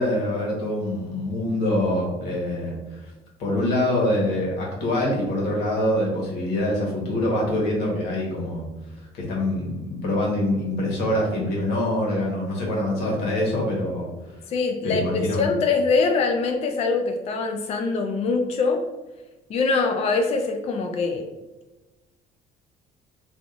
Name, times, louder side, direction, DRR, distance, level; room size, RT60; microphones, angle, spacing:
voice 1, 0.0-3.1 3.4-8.7 9.1-14.1 14.8-15.5, left 1 dB, 90° left, -3 dB, 1.2 m, -25 dB
voice 2, 14.5-18.8 19.5-21.2, left 4 dB, 40° left, 3 dB, 0.4 m, -23 dB
3.4 x 2.5 x 2.5 m, 1.1 s
cardioid pair, 110°, 17 cm